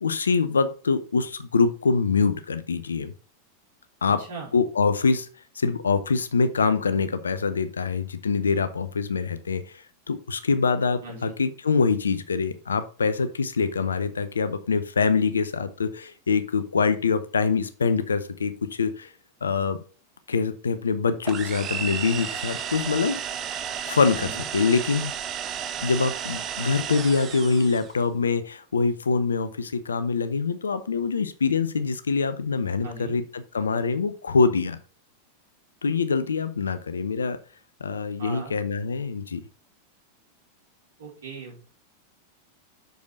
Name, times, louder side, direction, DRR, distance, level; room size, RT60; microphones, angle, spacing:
voice 1, 0.0-3.1 4.0-4.3 4.5-5.3 5.6-9.6 10.1-19.1 19.4-19.8 20.3-23.2 23.9-25.1 25.8-34.8 35.8-37.4 37.8-39.4, left 4 dB, 70° left, 12 dB, 0.7 m, -24 dB
voice 2, 4.2-4.5 11.0-11.3 24.1-24.5 32.8-33.1 38.2-38.6 41.0-41.6, right 3 dB, 60° right, -3 dB, 4.2 m, -39 dB
sound 1, 21.2-28.0, right 8 dB, 30° right, 0.7 m, -33 dB
6.4 x 5.2 x 4.7 m, 0.38 s
figure-of-eight pair, 90°, 0 cm